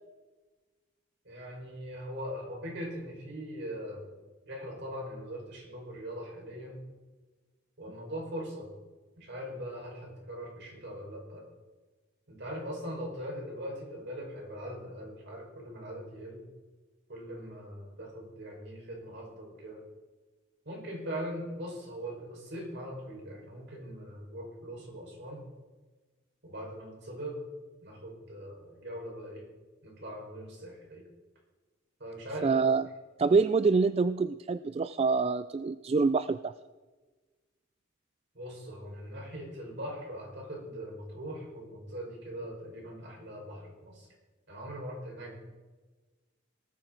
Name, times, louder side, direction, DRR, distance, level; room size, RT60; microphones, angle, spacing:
voice 1, 1.2-4.1 4.4-6.8 7.8-8.7 9.2-11.5 12.3-16.4 17.1-19.8 20.6-25.4 26.4-27.5 27.8-29.5 29.8-31.1 32.0-32.6 38.3-44.1 44.5-45.4, equal, 60° right, 0 dB, 5.0 m, -41 dB
voice 2, 32.4-32.8 33.2-36.5, right 4 dB, 30° right, 13 dB, 0.3 m, -26 dB
18.5 x 13.5 x 3.9 m, 1.3 s
head